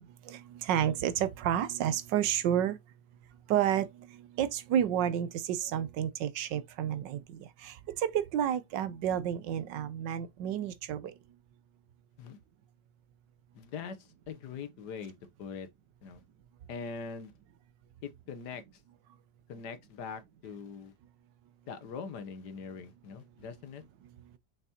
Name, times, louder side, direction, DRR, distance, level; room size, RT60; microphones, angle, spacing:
voice 1, 0.3-2.8 3.5-3.9 4.4-7.2 7.6-7.7 8.0-11.1, right 10 dB, 75° right, 1.3 m, -30 dB
voice 2, 13.5-15.7 16.0-16.2 16.7-17.3 18.0-18.6 19.5-20.9 21.7-23.8, left 5 dB, 65° left, 1.4 m, -42 dB
5.9 x 5.6 x 2.8 m
omnidirectional pair, 2.0 m